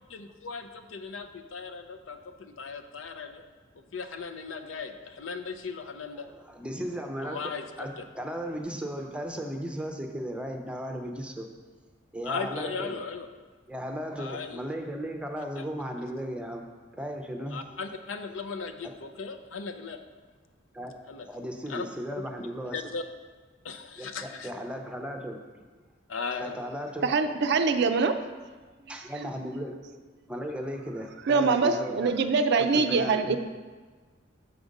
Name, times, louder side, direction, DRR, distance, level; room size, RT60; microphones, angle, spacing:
voice 1, 0.1-3.4 3.8-6.3 7.2-8.0 12.2-13.3 14.2-14.7 15.6-15.7 17.5-20.0 21.1-21.3 21.7-21.8 22.7-23.0 23.6-24.5 26.1-26.5, left 5 dB, 80° left, 8 dB, 0.6 m, -37 dB
voice 2, 6.1-11.5 12.1-13.0 13.7-16.7 16.9-17.7 18.8-18.9 20.7-20.9 21.3-22.9 24.0-25.4 26.3-27.2 28.9-32.1 32.6-33.4, equal, 5° right, 3 dB, 0.6 m, -36 dB
voice 3, 27.0-28.2 31.3-33.4, right 4 dB, 60° right, 9 dB, 0.4 m, -24 dB
7.1 x 5.0 x 5.2 m, 1.4 s
head